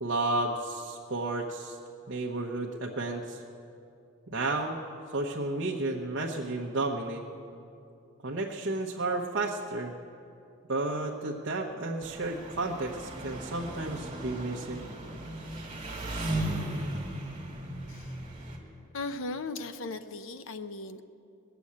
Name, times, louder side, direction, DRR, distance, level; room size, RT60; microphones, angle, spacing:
voice 1, 0.0-1.8 2.1-3.4 4.3-4.8 5.1-7.2 8.2-9.9 10.7-14.9, right 2 dB, 55° right, -1 dB, 0.9 m, -32 dB
Engine, 12.0-18.6, right 1 dB, 25° right, 1.9 m, -36 dB
voice 2, 18.9-21.0, left 3 dB, 70° left, 11 dB, 0.7 m, -37 dB
20.5 x 7.0 x 8.6 m, 2.7 s
head